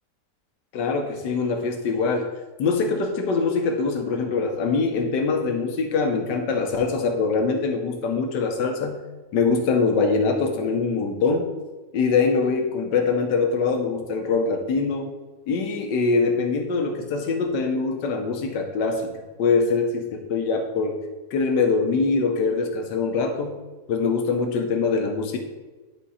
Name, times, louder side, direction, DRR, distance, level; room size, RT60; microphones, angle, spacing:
voice 1, 0.7-2.3 2.6-9.0 9.3-11.5 11.9-15.1 15.5-21.0 21.3-23.5 23.9-25.4, left 4 dB, 85° left, 4 dB, 1.5 m, -23 dB
10.5 x 3.6 x 4.2 m, 1.2 s
omnidirectional pair, 1.8 m